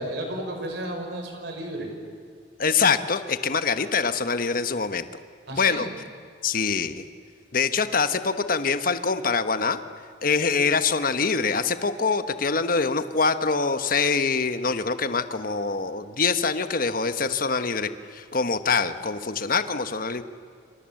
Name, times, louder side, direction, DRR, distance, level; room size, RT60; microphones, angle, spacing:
voice 1, 0.0-1.9 5.5-5.9, right 1 dB, 70° right, 4 dB, 5.7 m, -33 dB
voice 2, 2.6-5.2 5.5-5.9 6.4-7.0 7.5-9.8 10.2-20.2, left 5 dB, 50° left, 10 dB, 1.2 m, -24 dB
27.5 x 27.0 x 7.8 m, 2.3 s
head